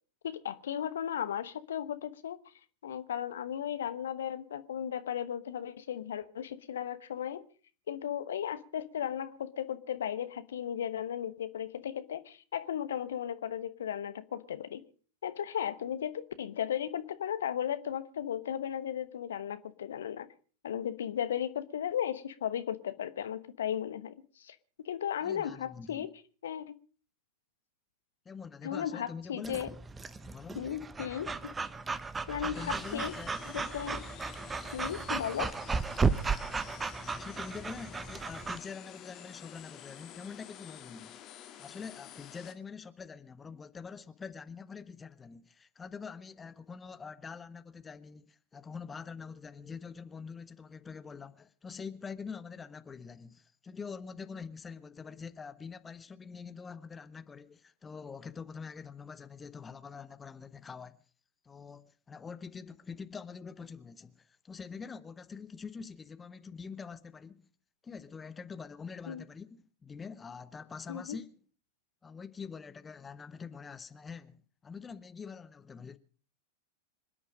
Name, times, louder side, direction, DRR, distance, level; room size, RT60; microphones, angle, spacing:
voice 1, 0.2-2.4 2.8-7.4 7.9-14.8 15.2-20.3 20.6-24.5 24.8-26.1 26.4-26.7 28.6-29.7 30.5-31.3 32.3-33.1 33.5-34.0 34.7-35.6 69.1-69.2 70.9-71.2, left 9 dB, 65° left, 1.0 m, -35 dB
voice 2, 25.2-26.1 28.2-29.6 30.2-30.6 32.3-33.4 37.0-41.1 41.6-61.0 61.4-67.5 67.8-71.3 72.0-76.0, left 5 dB, 15° left, 0.9 m, -45 dB
Breathing / Dog, 29.4-38.6, right 4 dB, 15° right, 0.9 m, -35 dB
sound 1, 32.5-42.5, left 10 dB, 35° left, 1.9 m, -50 dB
26.5 x 10.0 x 5.0 m
figure-of-eight pair, 90°, 0 cm